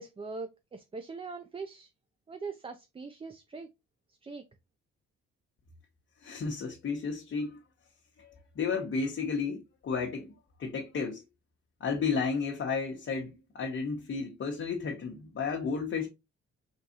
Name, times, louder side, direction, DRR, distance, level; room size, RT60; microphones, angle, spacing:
voice 1, 0.0-1.9 2.3-3.7 4.2-4.4, right 4 dB, 20° right, 0.4 m, -41 dB
voice 2, 6.2-7.6 8.2-11.2 11.8-16.1, left 5 dB, 45° left, 0.9 m, -33 dB
3.9 x 3.6 x 2.7 m
cardioid pair, 90°, 30 cm